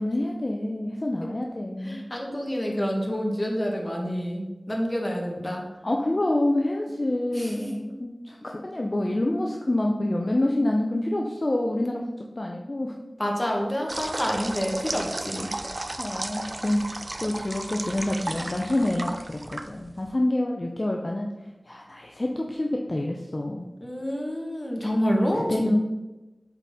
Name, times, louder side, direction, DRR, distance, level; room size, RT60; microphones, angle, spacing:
voice 1, 0.0-2.0 5.8-12.9 16.0-16.8 17.2-21.3 21.7-23.7 25.5-25.8, left 1 dB, 45° left, 0 dB, 0.6 m, -27 dB
voice 2, 1.8-5.7 7.0-7.9 13.2-15.5 23.8-25.8, equal, 25° left, 0 dB, 1.5 m, -28 dB
sound 1, 13.9-20.1, right 2 dB, 45° right, 0.4 m, -34 dB
8.0 x 4.2 x 3.6 m, 1.1 s
wide cardioid pair, 50°, 0 cm